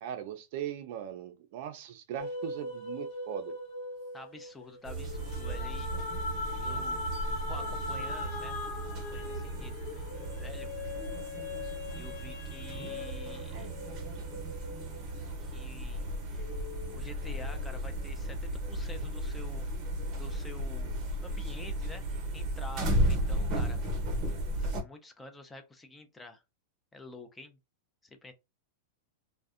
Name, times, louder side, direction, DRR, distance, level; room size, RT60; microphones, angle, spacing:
voice 1, 0.0-3.6, right 10 dB, 55° right, 0.4 m, -39 dB
sound 1, 2.2-15.9 16.4-18.0, left 3 dB, 60° left, 0.6 m, -40 dB
voice 2, 4.1-6.3 6.6-7.0 7.5-8.6 9.1-10.1 10.4-10.7 11.6-13.7 15.4-16.0 16.3-16.5 16.9-19.7 20.1-23.8 24.6-26.4 26.9-27.6 28.0-28.3, left 2 dB, 10° left, 0.4 m, -49 dB
sound 2, 4.8-24.8, right 1 dB, 35° right, 0.8 m, -35 dB
2.5 x 2.1 x 2.4 m
supercardioid pair, 140°, 0 cm